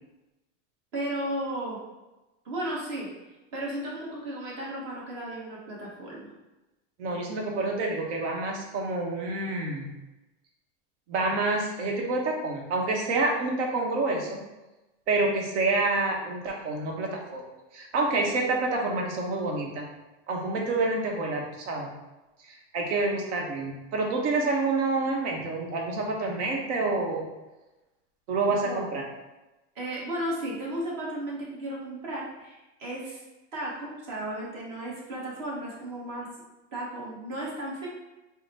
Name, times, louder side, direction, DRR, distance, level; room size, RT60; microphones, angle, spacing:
voice 1, 0.9-1.8 2.4-3.1 3.5-6.3 28.6-28.9 29.7-33.2 33.5-36.3 36.7-37.9, right 1 dB, 40° right, -4 dB, 1.1 m, -34 dB
voice 2, 7.0-9.9 11.1-14.4 15.1-17.4 17.7-19.9 20.3-21.9 22.4-27.2 28.3-29.0, right 3 dB, 65° right, 0 dB, 1.0 m, -28 dB
3.7 x 2.1 x 4.0 m, 1.0 s
supercardioid pair, 180°, 37 cm